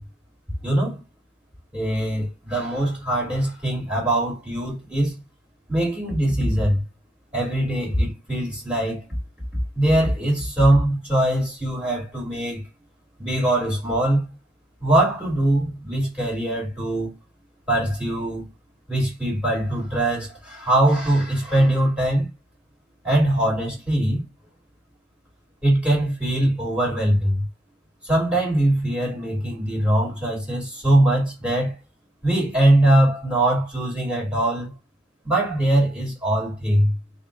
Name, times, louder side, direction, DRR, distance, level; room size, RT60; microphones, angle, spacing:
voice 1, 0.6-1.0 1.7-5.2 5.7-6.8 7.3-9.0 9.7-12.6 13.2-14.3 14.8-17.1 17.7-18.4 18.9-22.3 23.0-24.2 25.6-27.4 28.0-31.8 32.2-34.7 35.2-36.9, right 1 dB, 5° right, 3.0 m, -22 dB
6.9 x 2.7 x 2.6 m
head